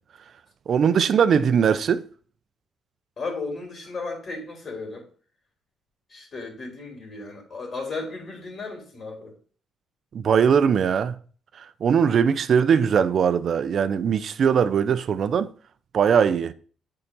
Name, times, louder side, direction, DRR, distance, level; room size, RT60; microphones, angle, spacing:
voice 1, 0.7-2.0 10.1-11.1 11.6-15.5 15.9-16.5, right 7 dB, 55° right, 0.7 m, -20 dB
voice 2, 3.2-5.1 6.1-9.4, left 3 dB, 50° left, 3.8 m, -35 dB
8.8 x 4.9 x 5.5 m
cardioid pair, 90°, 0 cm